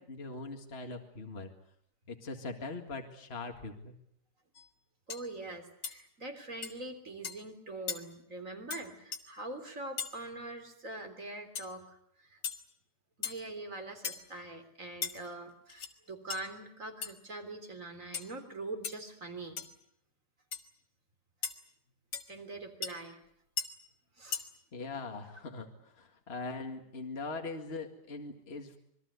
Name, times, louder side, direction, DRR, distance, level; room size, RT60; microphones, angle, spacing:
voice 1, 0.0-1.5 2.1-4.0 24.7-28.8, left 3 dB, 35° left, 4 dB, 2.3 m, -41 dB
sound 1, 4.5-4.7 5.1-5.3 5.8-6.0 6.6-6.7 7.2-7.4 7.9-8.0 8.7-8.8 9.1-9.2 10.0-10.1 11.5-11.7 12.4-12.6 13.2-13.4 14.0-14.3 15.0-15.1 15.7-15.9 16.3-16.4 17.0-17.1 18.1-18.3 18.8-18.9 19.6-19.7 20.5-20.6 21.4-21.5 22.1-22.2 22.8-22.9 23.6-23.7 24.3-24.4, left 7 dB, 90° left, 2.4 m, -37 dB
voice 2, 5.1-12.4 13.2-19.6 22.3-23.2 24.2-24.4, right 2 dB, 50° right, 6 dB, 3.9 m, -43 dB
26.0 x 22.0 x 8.2 m, 0.72 s
omnidirectional pair, 1.8 m